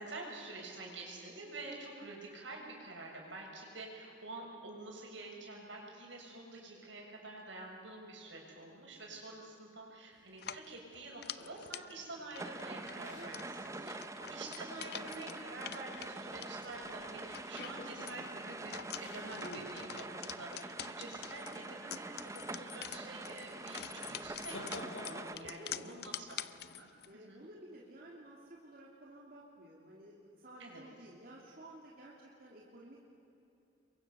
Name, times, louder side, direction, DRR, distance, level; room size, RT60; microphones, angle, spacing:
voice 1, 0.0-26.9 27.1-27.4 30.6-30.8, right 2 dB, 80° right, -1 dB, 7.1 m, -48 dB
sound 1, 10.3-27.1, left 10 dB, 55° left, 0.6 m, -48 dB
sound 2, 11.4-13.7 14.0-14.1 16.5-17.1 17.6-18.3 18.9-19.7 23.9-25.6, left 1 dB, 90° left, 6.7 m, -50 dB
sound 3, 12.4-25.4, right 2 dB, 15° right, 0.7 m, -45 dB
voice 2, 13.7-14.1 24.9-26.2 27.1-33.0, right 1 dB, 50° right, -3 dB, 3.0 m, -54 dB
29.0 x 23.5 x 7.1 m, 2.9 s
head